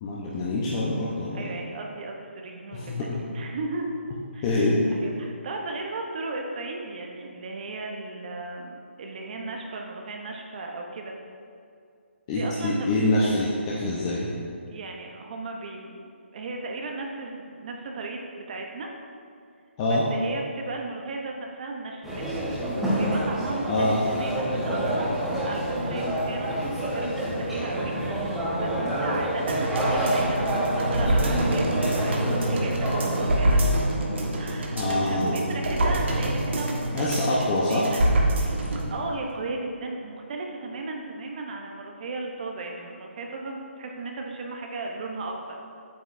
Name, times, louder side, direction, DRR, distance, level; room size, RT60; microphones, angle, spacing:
voice 1, 0.0-1.4 2.7-3.2 4.4-4.8 12.3-14.3 19.8-20.0 23.7-24.0 34.7-35.4 36.9-37.9, left 2 dB, 25° left, -6 dB, 0.8 m, -25 dB
voice 2, 1.3-3.9 4.3-11.1 12.3-12.9 14.7-18.9 19.8-22.4 23.0-33.9 34.4-45.6, right 3 dB, 40° right, 1 dB, 0.8 m, -36 dB
sound 1, 22.0-33.4, right 1 dB, 5° right, 1.1 m, -28 dB
sound 2, 29.5-38.9 39.3-39.4, right 1 dB, 65° right, 1.4 m, -26 dB
8.7 x 8.0 x 2.6 m, 2.3 s
hypercardioid pair, 160°, 7 cm